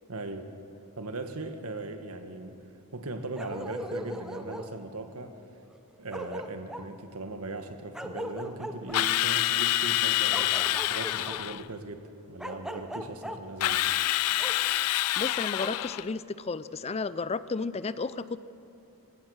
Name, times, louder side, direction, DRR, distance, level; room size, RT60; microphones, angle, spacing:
voice 1, 0.1-0.5 0.9-2.6 2.9-5.3 6.0-12.0 12.3-13.8, right 2 dB, 75° right, 7 dB, 1.6 m, -39 dB
Bark, 3.3-4.7 5.7-5.8 6.1-6.9 7.9-9.0 10.3-11.4 12.4-13.4 14.4-14.5 15.6-15.7, equal, 5° right, 0.8 m, -38 dB
Drill, 8.9-11.6 13.6-16.1, left 14 dB, 85° left, 0.4 m, -27 dB
voice 2, 15.2-18.4, left 4 dB, 30° left, 15 dB, 0.4 m, -33 dB
26.5 x 16.0 x 6.5 m, 2.9 s
head